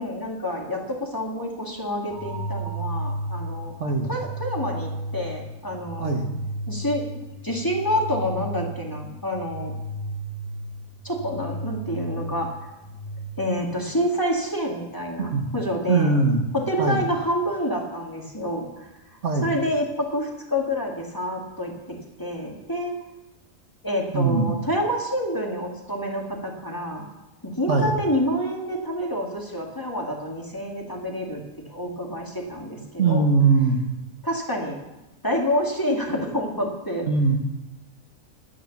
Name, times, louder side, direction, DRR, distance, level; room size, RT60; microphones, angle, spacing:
voice 1, 0.0-3.7 4.1-6.2 6.7-7.0 7.4-9.7 11.0-12.5 13.4-16.1 16.5-18.9 19.4-23.0 23.8-27.1 27.6-31.4 31.7-33.3 34.2-34.8 35.2-37.1, equal, 15° left, -1 dB, 2.1 m, -28 dB
sound 1, 2.1-14.1, right 1 dB, 45° right, 4.8 m, -34 dB
voice 2, 3.8-4.1 6.0-6.3 15.3-15.5 15.9-16.4 16.8-17.0 19.2-19.5 24.1-24.5 27.7-27.9 33.0-33.8 37.0-37.4, right 4 dB, 60° right, 3 dB, 1.7 m, -21 dB
11.5 x 10.0 x 7.2 m, 1.0 s
omnidirectional pair, 1.4 m